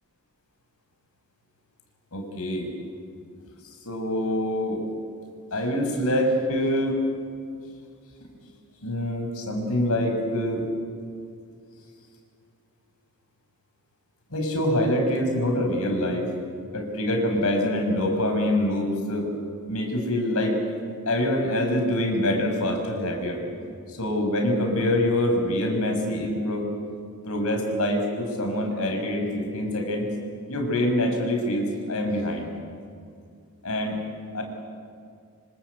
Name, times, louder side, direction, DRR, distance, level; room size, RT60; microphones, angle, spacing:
voice 1, 2.1-2.7 3.8-4.8 5.5-7.0 8.8-10.6 14.3-16.3 16.7-19.3 19.7-20.6 21.1-23.4 23.9-26.7 27.2-30.1 30.5-32.5 33.6-34.0 34.3-34.4, left 1 dB, 70° left, 3 dB, 5.9 m, -25 dB
26.5 x 26.0 x 8.2 m, 2.3 s
head